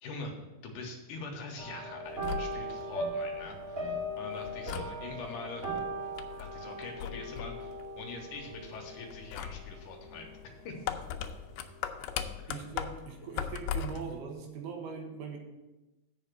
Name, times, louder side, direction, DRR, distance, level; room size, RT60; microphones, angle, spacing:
voice 1, 0.0-0.3 0.6-5.8 6.4-10.3 10.6-10.8 12.4-12.6, left 3 dB, 65° left, 2 dB, 2.4 m, -43 dB
sound 1, 1.6-11.1 11.4-11.8 12.2-12.3, right 1 dB, 35° right, 3.0 m, -39 dB
sound 2, 2.1-14.2, left 9 dB, 85° left, 2.5 m, -41 dB
voice 2, 12.5-15.4, right 6 dB, 80° right, 2 dB, 3.2 m, -41 dB
8.5 x 5.6 x 6.6 m, 1.1 s
omnidirectional pair, 4.4 m